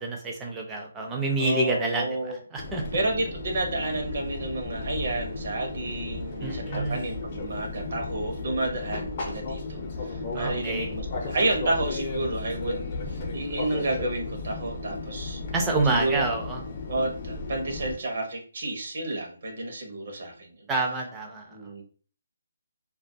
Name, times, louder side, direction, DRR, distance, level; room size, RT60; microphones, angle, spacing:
voice 1, 0.0-2.8 6.4-7.1 10.3-10.9 15.5-16.6 20.7-21.6, right 2 dB, 10° right, 0 dB, 0.5 m, -28 dB
voice 2, 1.4-2.4 2.9-15.4 15.9-16.3 16.9-20.7 21.5-21.8, right 2 dB, 55° right, 2 dB, 0.7 m, -30 dB
Fixed-wing aircraft airplane, 2.6-17.9, left 3 dB, 35° left, 0.6 m, -35 dB
2.2 x 2.2 x 2.7 m, 0.42 s
hypercardioid pair, 165°, 0 cm